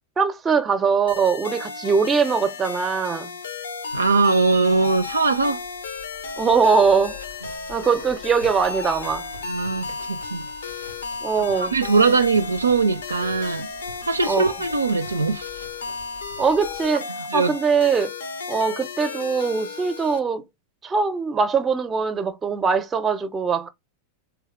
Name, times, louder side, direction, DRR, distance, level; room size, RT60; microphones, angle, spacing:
voice 1, 0.2-3.3 6.4-7.2 7.7-9.3 11.2-11.7 14.3-14.5 16.4-18.1 18.5-20.4 20.8-23.7, right 5 dB, 20° right, 0.5 m, -21 dB
sound 1, 1.1-20.2, left 4 dB, 65° left, 0.6 m, -34 dB
Livestock farm animals working animals, 3.9-16.9, left 2 dB, 85° left, 1.0 m, -45 dB
voice 2, 3.9-5.6 9.4-10.5 11.6-13.7 14.0-15.7 17.3-17.5, right 4 dB, 80° right, 0.4 m, -21 dB
3.4 x 3.1 x 3.4 m
figure-of-eight pair, 90°, 0 cm